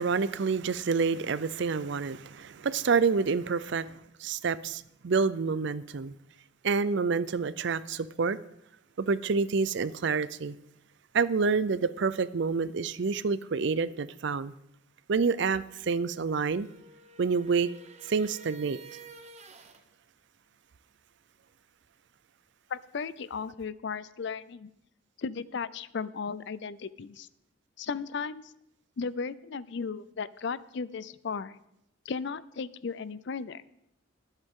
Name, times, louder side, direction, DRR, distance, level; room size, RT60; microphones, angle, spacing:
voice 1, 0.0-6.1 6.6-8.4 9.0-10.6 11.1-14.5 15.1-16.7 17.2-17.7 18.1-18.8, right 5 dB, 60° right, 0.5 m, -28 dB
sound 1, 16.2-19.8, right 5 dB, 35° right, 1.0 m, -50 dB
voice 2, 22.7-24.7 25.2-27.3 27.8-28.5 29.0-31.6 32.1-33.6, left 5 dB, 60° left, 0.5 m, -35 dB
23.5 x 8.1 x 3.7 m
head